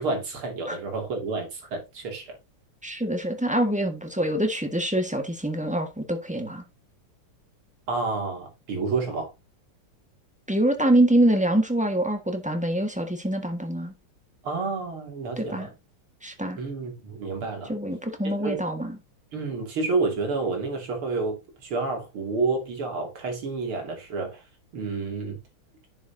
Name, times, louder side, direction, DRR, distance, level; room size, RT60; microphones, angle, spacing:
voice 1, 0.0-2.4 7.9-9.3 14.4-15.7 16.6-17.8 18.4-18.6 19.3-24.4 24.7-25.4, right 3 dB, 80° right, 3.6 m, -29 dB
voice 2, 2.8-6.6 10.5-13.9 15.4-15.7 16.2-16.6 17.7-18.9, right 1 dB, 5° right, 1.2 m, -25 dB
10.5 x 7.3 x 2.7 m
omnidirectional pair, 2.3 m